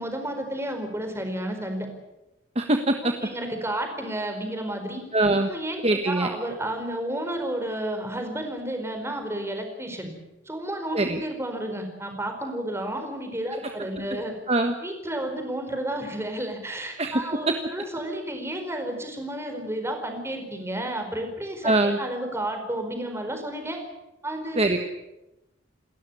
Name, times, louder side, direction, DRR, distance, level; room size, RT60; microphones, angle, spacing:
voice 1, 0.0-1.9 3.2-5.0 5.5-10.1 10.4-14.3 14.8-23.8 24.2-24.6, right 1 dB, 15° right, 5 dB, 4.6 m, -31 dB
voice 2, 2.5-3.1 5.1-5.5 5.8-6.3 10.9-11.2 14.5-14.7 17.0-17.2 21.6-22.0 24.6-24.8, right 2 dB, 30° right, 6 dB, 1.4 m, -22 dB
29.0 x 13.5 x 9.9 m, 0.97 s
head